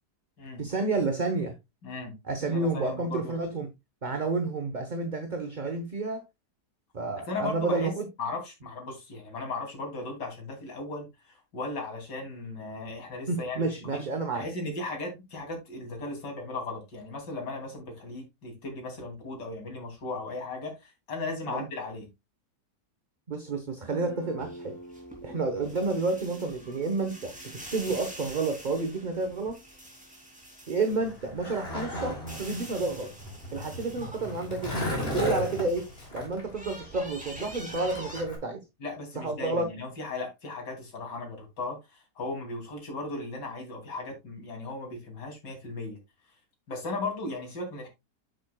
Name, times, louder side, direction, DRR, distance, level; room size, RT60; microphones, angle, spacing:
voice 1, 0.6-1.6 2.2-3.7 4.0-6.2 6.9-8.1 13.3-14.5 21.5-21.7 23.3-24.7 25.2-27.3 27.7-29.6 30.7-33.1 33.5-34.8 35.0-38.6 39.1-39.7, right 3 dB, 30° right, 1.0 m, -30 dB
voice 2, 1.8-3.3 7.3-7.9 8.2-14.0 14.3-22.1 38.8-46.0 46.7-47.9, left 3 dB, 75° left, 3.5 m, -37 dB
Guitar, 23.9-31.6, right 1 dB, 65° right, 2.6 m, -49 dB
sound 1, 24.4-31.3 31.7-36.1 36.4-38.2, equal, 5° right, 2.6 m, -46 dB
Skateboard, 30.9-38.4, left 1 dB, 35° left, 3.2 m, -35 dB
8.8 x 7.5 x 2.3 m
omnidirectional pair, 1.9 m